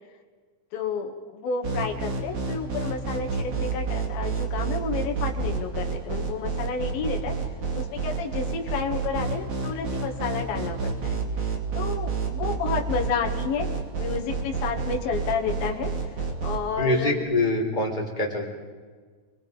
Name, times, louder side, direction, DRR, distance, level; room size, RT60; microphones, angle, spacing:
voice 1, 0.7-7.4 7.7-11.1 11.8-13.7 14.0-15.9 16.4-17.2, left 5 dB, 60° left, 2 dB, 3.5 m, -30 dB
sound 1, 1.6-16.6, right 5 dB, 45° right, 3.6 m, -28 dB
voice 2, 16.8-18.4, left 2 dB, 10° left, -1 dB, 3.3 m, -24 dB
29.5 x 22.5 x 5.3 m, 1.5 s
omnidirectional pair, 5.2 m